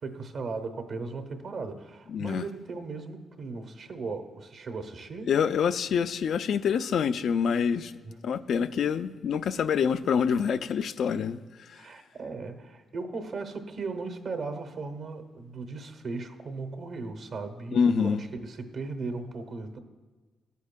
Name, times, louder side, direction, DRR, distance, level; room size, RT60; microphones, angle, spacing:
voice 1, 0.0-5.3 8.0-8.2 11.7-19.8, right 3 dB, 60° right, 0.8 m, -37 dB
voice 2, 2.1-2.4 5.3-7.9 8.2-11.4 11.7-11.8 17.7-18.2, left 7 dB, 70° left, 0.3 m, -26 dB
13.5 x 8.2 x 2.2 m
cardioid pair, 95°, 0 cm